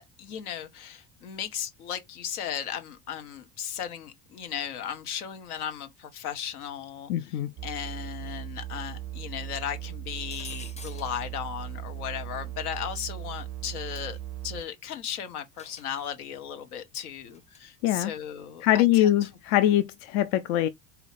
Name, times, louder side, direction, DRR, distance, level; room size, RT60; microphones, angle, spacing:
voice 1, 0.0-7.1 7.6-14.2 14.4-19.3, left 9 dB, 85° left, 1.1 m, -36 dB
voice 2, 7.1-7.5 17.8-18.1 18.6-20.7, left 13 dB, 60° left, 0.6 m, -23 dB
sound 1, 7.6-14.6, right 12 dB, 40° right, 0.4 m, -38 dB
sound 2, 10.3-11.3 13.9-14.2 15.6-16.0 17.3-17.6, left 4 dB, 15° left, 0.6 m, -47 dB
4.2 x 2.9 x 4.1 m
hypercardioid pair, 80°, 43 cm